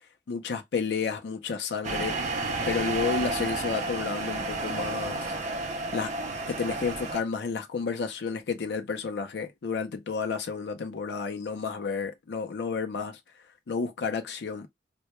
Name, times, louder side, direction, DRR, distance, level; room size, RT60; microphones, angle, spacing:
voice 1, 0.3-2.2 2.7-5.3 5.9-6.1 6.5-13.2 13.7-14.7, left 5 dB, 70° left, 0.4 m, -31 dB
sound 1, 1.8-7.2, right 2 dB, 40° right, 0.4 m, -31 dB
2.1 x 2.1 x 2.8 m
head